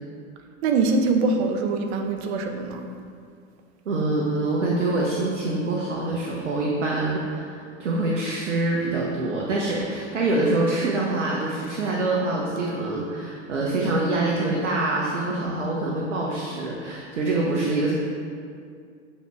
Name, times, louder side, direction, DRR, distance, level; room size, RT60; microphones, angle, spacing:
voice 1, 0.6-2.8, right 3 dB, 60° right, 5 dB, 1.0 m, -23 dB
voice 2, 3.8-17.9, right 2 dB, 85° right, -3 dB, 1.2 m, -25 dB
8.2 x 4.4 x 4.6 m, 2.3 s
hypercardioid pair, 95°, 37 cm